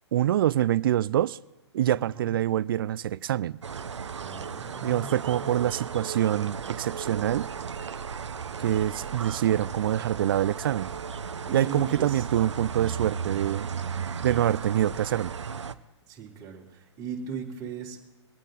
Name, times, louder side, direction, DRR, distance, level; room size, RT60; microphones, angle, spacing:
voice 1, 0.1-1.4 1.7-3.6 4.8-7.5 8.6-10.9 11.5-13.7 14.2-15.3, right 12 dB, 50° right, 0.4 m, -25 dB
voice 2, 2.0-2.3 4.2-5.7 8.5-8.8 11.4-12.3 16.1-18.0, right 5 dB, 25° right, 3.2 m, -39 dB
sound 1, 3.6-15.7, right 6 dB, 75° right, 0.8 m, -35 dB
23.5 x 9.0 x 3.8 m
hypercardioid pair, 130°, 15 cm